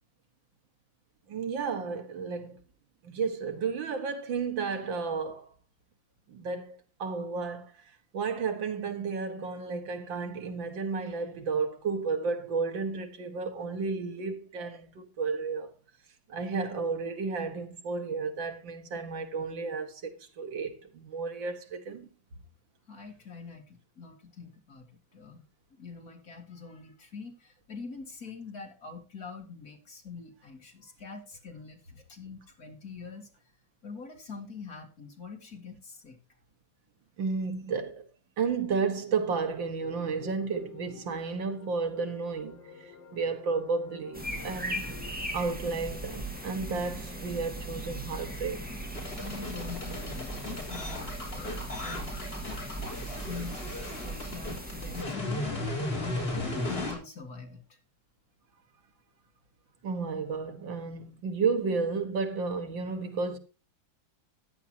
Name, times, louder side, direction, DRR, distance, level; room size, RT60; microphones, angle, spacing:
voice 1, 1.3-2.6 3.0-5.5 6.3-7.7 8.1-15.7 16.3-22.1 37.2-38.0 38.4-44.9 45.3-48.6 59.8-63.4, right 4 dB, 90° right, 2.3 m, -32 dB
voice 2, 22.9-25.4 25.7-33.3 33.8-36.2 49.2-52.1 53.3-55.5 56.0-57.8, left 5 dB, 50° left, 2.9 m, -44 dB
sound 1, 39.8-45.1, left 7 dB, 85° left, 2.6 m, -50 dB
sound 2, 44.1-55.0, right 1 dB, 5° right, 2.0 m, -38 dB
sound 3, 48.9-56.9, left 1 dB, 30° left, 4.3 m, -36 dB
14.0 x 10.5 x 2.9 m
omnidirectional pair, 2.0 m